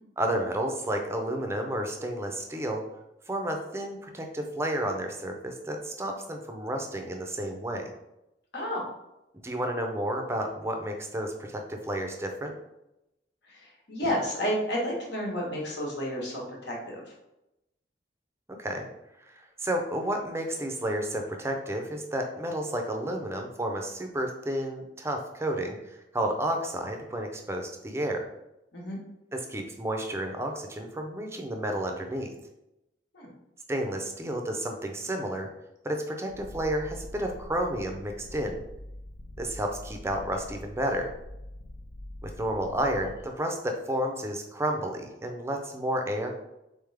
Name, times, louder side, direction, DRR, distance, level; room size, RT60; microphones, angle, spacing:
voice 1, 0.2-2.8 3.3-7.9 9.4-12.5 18.5-18.9 19.2-28.2 29.3-32.3 33.7-35.5 35.8-38.6 39.4-41.1 42.2-46.3, right 1 dB, 15° right, 4 dB, 0.5 m, -31 dB
voice 2, 8.5-8.9 13.5-17.0 28.7-29.0 33.1-33.3, equal, 70° left, -2 dB, 1.2 m, -31 dB
Purr, 36.3-43.3, left 1 dB, 85° left, 0.7 m, -44 dB
3.7 x 3.6 x 3.3 m, 0.90 s
head